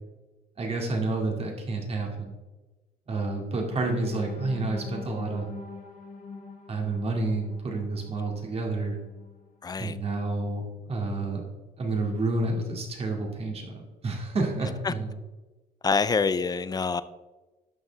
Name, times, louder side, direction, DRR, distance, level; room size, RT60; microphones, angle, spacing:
voice 1, 0.6-2.4 3.1-5.5 6.7-9.0 9.8-11.4 11.8-15.1, right 2 dB, 35° right, 1 dB, 2.4 m, -29 dB
sound 1, 3.5-9.5 9.9-10.1 10.5-10.7, left 3 dB, 50° left, 1.7 m, -44 dB
voice 2, 9.6-10.0 14.8-14.9 15.8-17.0, left 5 dB, 25° left, 15 dB, 0.4 m, -26 dB
11.0 x 6.8 x 3.5 m, 1.2 s
cardioid pair, 110°, 17 cm